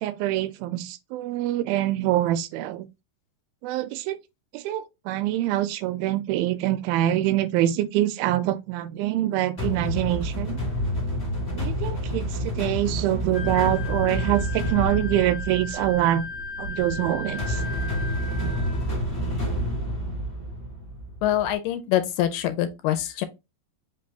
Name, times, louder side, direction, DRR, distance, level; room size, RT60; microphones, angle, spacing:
voice 1, 0.0-2.9 3.6-4.2 4.5-10.6 11.5-16.3 16.6-17.6, right 13 dB, 90° right, 2.4 m, -25 dB
trailer build, 9.6-21.5, equal, 25° left, 1.4 m, -29 dB
Wind instrument woodwind instrument, 13.3-18.8, left 5 dB, 50° left, 0.7 m, -37 dB
voice 2, 21.2-23.3, left 12 dB, 80° left, 2.1 m, -25 dB
5.2 x 3.3 x 2.7 m
omnidirectional pair, 4.1 m